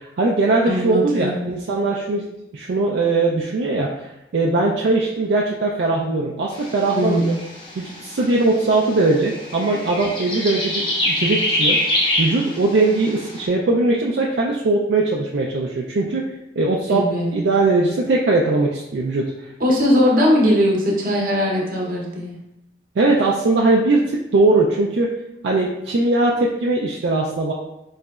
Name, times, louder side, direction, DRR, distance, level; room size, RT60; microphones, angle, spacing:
voice 1, 0.0-2.3 2.5-7.3 7.8-11.8 12.2-16.2 16.6-17.0 17.3-19.5 23.0-25.1 25.4-27.5, right 2 dB, 65° right, -3 dB, 0.4 m, -20 dB
voice 2, 0.7-1.5 6.9-7.4 16.9-17.4 19.6-22.4, equal, 50° right, -2 dB, 0.8 m, -19 dB
sound 1, 6.5-13.4, left 1 dB, 25° left, 0.5 m, -25 dB
3.8 x 3.1 x 2.3 m, 0.87 s
head